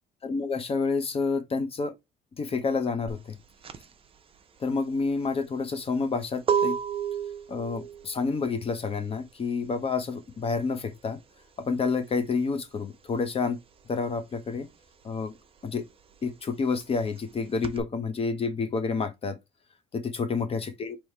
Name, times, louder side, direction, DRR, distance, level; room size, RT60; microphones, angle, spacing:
voice 1, 0.2-1.9 2.4-3.3 4.6-6.8 7.5-11.2 11.6-13.6 13.9-14.7 15.0-15.3 15.6-15.8 16.2-19.4 20.1-21.0, left 4 dB, 35° left, 0.8 m, -29 dB
sound 1, 3.1-13.3 13.6-17.8, right 7 dB, 35° right, 0.6 m, -33 dB
3.3 x 3.0 x 4.3 m
cardioid pair, 110°, 17 cm